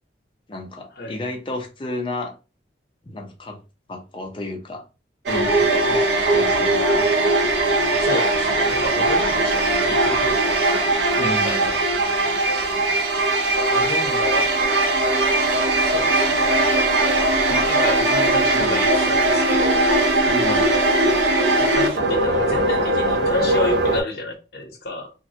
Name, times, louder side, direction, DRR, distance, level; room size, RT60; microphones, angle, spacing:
voice 1, 0.5-2.3 3.1-3.6 3.9-4.8 5.3-5.9 6.3-7.2 11.2-11.7 17.5-17.7 18.5-18.8 20.3-20.7, left 1 dB, 25° left, 0.5 m, -31 dB
sound 1, 5.3-24.0, right 2 dB, 70° right, 0.6 m, -19 dB
voice 2, 8.0-10.4 11.2-11.6 13.7-14.6 15.5-16.5 17.7-19.9 21.6-25.1, left 1 dB, 55° left, 0.8 m, -30 dB
3.0 x 2.2 x 2.7 m
head